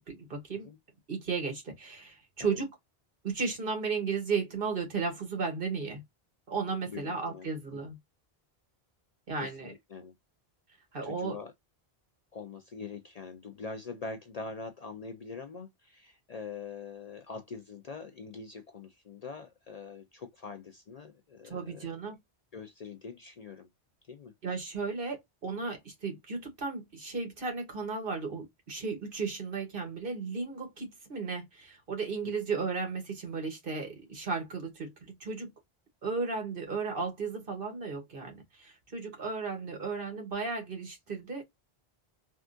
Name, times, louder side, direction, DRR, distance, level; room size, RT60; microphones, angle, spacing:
voice 1, 0.1-0.7 1.1-2.7 3.2-6.0 6.5-8.0 9.3-9.7 10.9-11.4 21.4-22.1 24.4-35.5 36.0-41.4, right 4 dB, 60° right, 1.4 m, -34 dB
voice 2, 6.9-7.8 9.4-10.1 11.0-11.5 12.3-21.9 22.5-23.7 24.1-24.3, left 4 dB, 50° left, 0.5 m, -43 dB
3.6 x 2.4 x 2.4 m
omnidirectional pair, 1.0 m